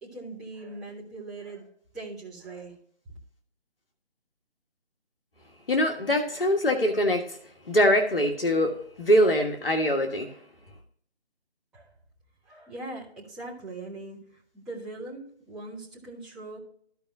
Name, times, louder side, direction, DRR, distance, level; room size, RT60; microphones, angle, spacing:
voice 1, 0.0-1.7 1.9-2.7 11.7-11.9 12.4-16.6, right 2 dB, ahead, 1.3 m, -41 dB
voice 2, 5.7-7.4 7.7-10.4, equal, 60° left, 1.4 m, -23 dB
15.0 x 5.1 x 2.7 m
figure-of-eight pair, 155°, 32 cm